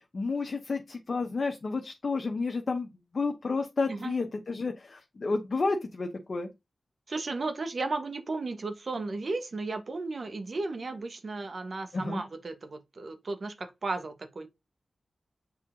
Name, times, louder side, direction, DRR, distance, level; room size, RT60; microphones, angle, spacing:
voice 1, 0.0-2.9 3.1-6.5 11.9-12.2, left 3 dB, 60° left, 0.9 m, -31 dB
voice 2, 7.1-14.5, right 3 dB, 60° right, 1.3 m, -34 dB
7.3 x 3.8 x 3.7 m
cardioid pair, 60°, 0 cm